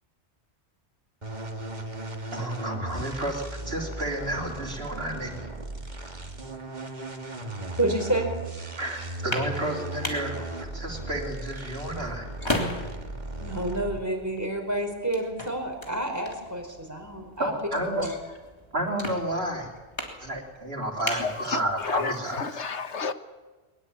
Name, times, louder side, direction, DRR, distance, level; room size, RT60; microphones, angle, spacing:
sound 1, 1.2-14.2, right 2 dB, 40° right, 2.3 m, -37 dB
voice 1, 2.3-5.3 8.8-12.3 17.4-18.1 18.7-19.7 20.2-22.6, right 1 dB, 60° right, 3.5 m, -31 dB
voice 2, 7.8-8.3 13.4-17.5 18.0-18.2, right 1 dB, 15° right, 5.1 m, -29 dB
sound 2, 9.0-22.1, left 1 dB, 25° left, 3.5 m, -38 dB
voice 3, 21.2-23.1, left 5 dB, 85° left, 1.5 m, -31 dB
22.5 x 21.0 x 8.8 m
omnidirectional pair, 1.2 m